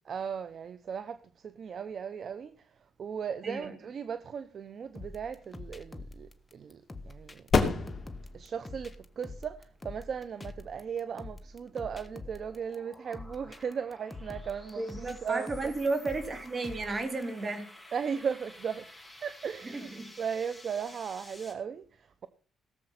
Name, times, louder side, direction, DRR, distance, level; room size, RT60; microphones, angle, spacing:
voice 1, 0.0-7.5 8.3-15.7 17.9-18.9 19.2-22.3, right 7 dB, 55° right, 0.8 m, -37 dB
sound 1, 4.9-12.2, left 4 dB, 35° left, 2.5 m, -35 dB
sound 2, 4.9-17.2, left 2 dB, 15° left, 1.4 m, -46 dB
sound 3, 11.3-21.5, left 1 dB, 5° right, 6.1 m, -53 dB
voice 2, 14.8-17.6 19.6-20.1, right 3 dB, 35° right, 3.5 m, -33 dB
18.0 x 7.6 x 5.7 m
cardioid pair, 90°, 0 cm